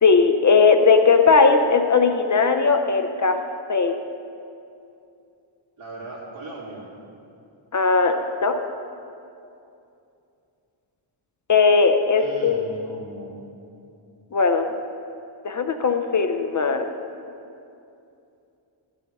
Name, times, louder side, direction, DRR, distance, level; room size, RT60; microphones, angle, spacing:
voice 1, 0.0-3.4 3.7-3.9 7.7-8.5 11.5-12.6 14.3-14.7 15.4-16.9, left 4 dB, 40° left, 7 dB, 0.5 m, -18 dB
voice 2, 5.8-6.9 12.1-13.4, right 2 dB, 70° right, -6 dB, 3.0 m, -38 dB
14.0 x 11.0 x 3.5 m, 2.6 s
wide cardioid pair, 180°, 49 cm